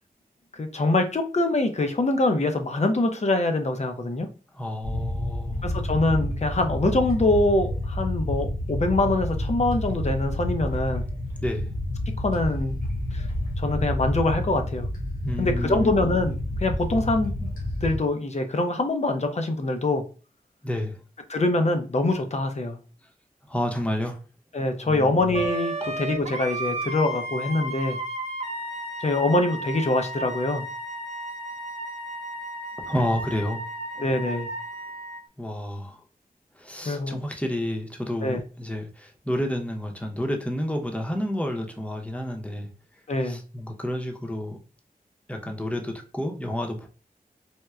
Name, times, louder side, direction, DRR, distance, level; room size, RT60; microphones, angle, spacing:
voice 1, 0.5-4.3 5.6-11.0 12.2-12.8 13.1-13.3 13.6-14.9 15.4-17.5 17.8-20.0 21.3-22.8 24.5-28.0 29.0-30.6 34.0-34.5 36.9-37.2 38.2-38.4 43.1-43.4, left 2 dB, 45° left, 6 dB, 0.6 m, -24 dB
voice 2, 4.5-5.6 11.4-11.7 15.2-16.0 20.6-20.9 23.5-24.2 24.8-25.1 32.9-33.6 34.0-34.1 35.4-36.0 36.6-42.7 43.2-44.6 45.3-46.9, left 1 dB, 10° left, 2 dB, 0.7 m, -30 dB
sound 1, 4.8-18.0, left 1 dB, 70° left, 1.7 m, -29 dB
Wind instrument woodwind instrument, 25.3-35.2, right 1 dB, 45° right, 0.5 m, -34 dB
4.3 x 2.2 x 2.3 m, 0.36 s
wide cardioid pair, 55°, 16 cm